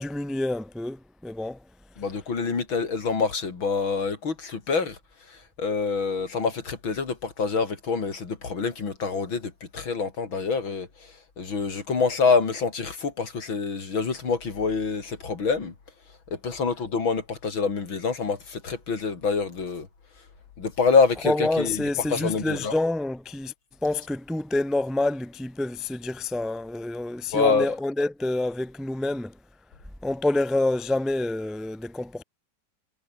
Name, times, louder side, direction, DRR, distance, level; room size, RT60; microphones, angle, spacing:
voice 1, 0.0-1.6 21.2-23.5 23.8-29.3 30.0-32.2, left 2 dB, ahead, 0.5 m, -27 dB
voice 2, 2.0-5.0 5.3-10.9 11.4-15.7 16.3-19.9 20.6-22.7 27.3-27.8, left 5 dB, 75° left, 4.1 m, -26 dB
omnidirectional pair, 2.2 m